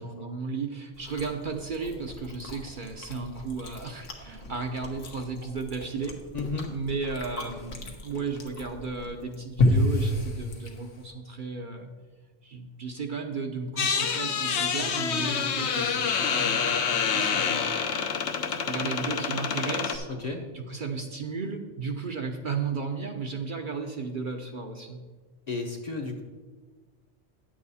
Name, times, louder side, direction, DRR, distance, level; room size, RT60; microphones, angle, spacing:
voice 1, 0.0-6.1 6.7-11.9 12.4-17.7 18.5-20.1 20.5-25.0, right 4 dB, 50° right, 3 dB, 0.8 m, -34 dB
Chewing mastication, 0.9-11.1, left 1 dB, 85° left, 1.5 m, -32 dB
voice 2, 6.3-6.7 20.2-20.4 25.5-26.2, left 3 dB, 40° left, 2 dB, 0.9 m, -33 dB
sound 1, 13.8-20.0, left 6 dB, 65° left, 1.0 m, -27 dB
9.6 x 7.6 x 4.1 m, 1.4 s
omnidirectional pair, 1.2 m